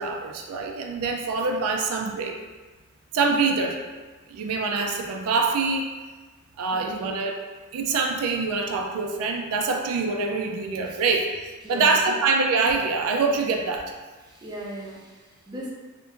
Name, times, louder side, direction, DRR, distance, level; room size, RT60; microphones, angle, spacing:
voice 1, 0.0-2.4 3.1-3.8 4.3-5.9 6.6-7.4 7.7-13.9, right 4 dB, 90° right, 2 dB, 0.3 m, -25 dB
voice 2, 6.7-7.1 11.6-12.1 14.2-15.7, right 1 dB, 20° right, -4 dB, 0.4 m, -38 dB
2.9 x 2.4 x 2.4 m, 1.3 s
head